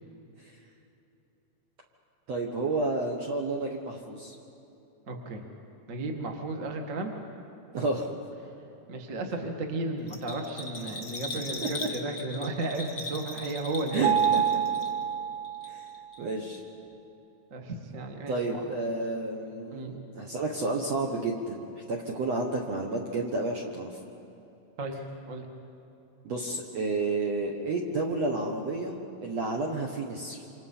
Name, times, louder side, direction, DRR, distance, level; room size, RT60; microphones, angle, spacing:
voice 1, 2.3-4.3 7.7-8.1 11.3-11.9 13.9-14.4 15.7-15.9 16.2-16.6 18.3-24.0 26.2-29.0 29.2-30.4, right 2 dB, 55° right, 0 dB, 1.9 m, -31 dB
voice 2, 5.1-5.4 5.9-7.1 8.9-14.2 17.5-18.6 19.7-20.0 24.8-25.0 25.3-25.4, right 2 dB, 35° right, 3 dB, 1.4 m, -34 dB
Bell, 10.1-15.2 15.4-16.2 16.5-16.6, left 2 dB, 40° left, 1.6 m, -39 dB
Mallet percussion, 14.0-16.0, right 8 dB, 80° right, 1.1 m, -27 dB
28.0 x 26.0 x 5.7 m, 2.9 s
omnidirectional pair, 4.6 m